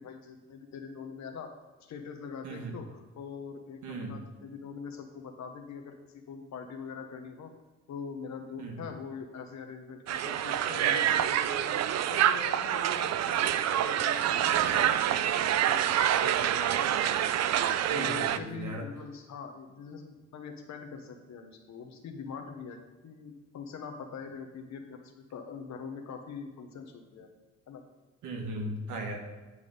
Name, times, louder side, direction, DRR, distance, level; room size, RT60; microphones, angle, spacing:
voice 1, 0.0-1.5 1.8-7.5 7.9-11.8 12.1-16.9 17.9-27.3 27.7-27.8, left 6 dB, 65° left, 5 dB, 1.0 m, -43 dB
voice 2, 3.8-4.2 8.6-8.9 17.9-18.9 28.2-29.2, right 1 dB, 80° right, 2 dB, 1.5 m, -37 dB
Crowd, 10.1-18.4, right 11 dB, 60° right, 0.4 m, -27 dB
9.7 x 3.5 x 5.4 m, 1.2 s
cardioid pair, 90°, 30 cm